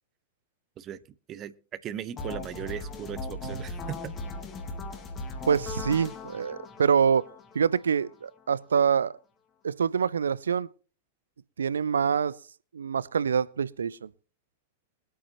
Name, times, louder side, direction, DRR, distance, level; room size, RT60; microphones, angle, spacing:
voice 1, 1.3-4.1, right 10 dB, 30° right, 0.7 m, -38 dB
sound 1, 2.2-8.1, left 3 dB, 25° left, 1.7 m, -38 dB
voice 2, 5.5-7.3 7.5-9.1 9.6-10.7 11.6-12.4 12.7-14.1, right 7 dB, 70° right, 0.5 m, -25 dB
23.5 x 8.6 x 2.8 m
figure-of-eight pair, 90°, 0 cm